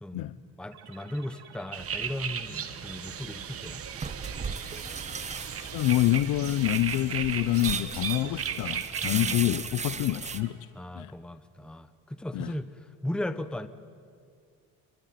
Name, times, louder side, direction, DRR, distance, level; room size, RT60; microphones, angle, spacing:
voice 1, 0.0-3.8 9.0-9.6 10.7-13.7, left 1 dB, ahead, 0.9 m, -37 dB
sound 1, 0.7-10.5, right 7 dB, 80° right, 3.6 m, -51 dB
sound 2, 1.7-9.3, right 8 dB, 35° right, 1.5 m, -36 dB
sound 3, 3.7-10.4, right 5 dB, 20° right, 1.0 m, -38 dB
voice 2, 5.6-10.7 10.9-11.1 12.3-12.5, left 15 dB, 60° left, 0.7 m, -27 dB
27.0 x 23.5 x 9.4 m
cardioid pair, 135°, 38 cm